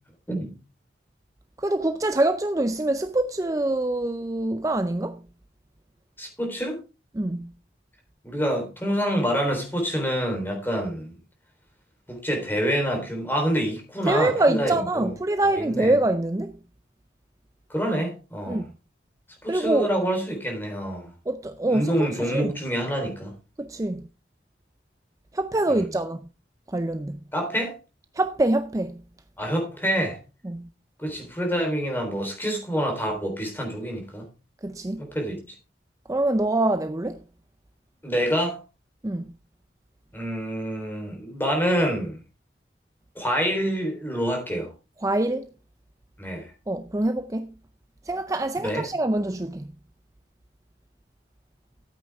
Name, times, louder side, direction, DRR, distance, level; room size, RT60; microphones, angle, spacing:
voice 1, 1.6-5.2 7.1-7.5 14.1-16.6 18.5-18.6 19.5-19.9 21.3-22.5 23.6-24.0 25.3-26.2 26.7-27.2 28.2-29.0 30.4-30.6 34.6-35.0 36.1-37.2 39.0-39.2 45.0-45.5 46.7-47.5 48.1-49.7, right 2 dB, 20° right, 0.4 m, -25 dB
voice 2, 6.2-6.8 8.2-11.1 12.1-15.1 15.6-15.9 17.7-18.7 19.4-21.1 21.7-23.3 25.7-25.9 27.3-27.7 29.4-30.2 31.0-34.2 35.0-35.4 38.0-38.6 40.1-42.2 43.2-44.7 46.2-46.5 48.6-48.9, equal, 10° left, 3.6 m, -27 dB
13.0 x 8.7 x 3.5 m
head